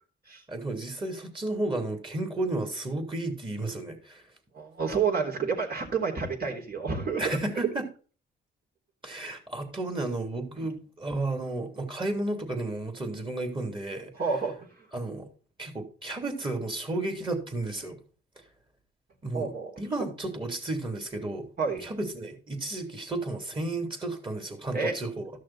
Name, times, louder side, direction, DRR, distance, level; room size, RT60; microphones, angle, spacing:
voice 1, 0.5-4.2 7.2-7.9 9.0-14.1 14.9-15.3 15.6-18.0 19.2-21.5 21.8-25.3, right 2 dB, 25° right, 3.1 m, -32 dB
voice 2, 4.5-7.4 10.5-10.7 14.1-14.9 19.3-19.8 21.6-21.9 24.7-25.0, right 5 dB, 50° right, 3.4 m, -30 dB
13.0 x 6.4 x 4.2 m
cardioid pair, 90°, 20 cm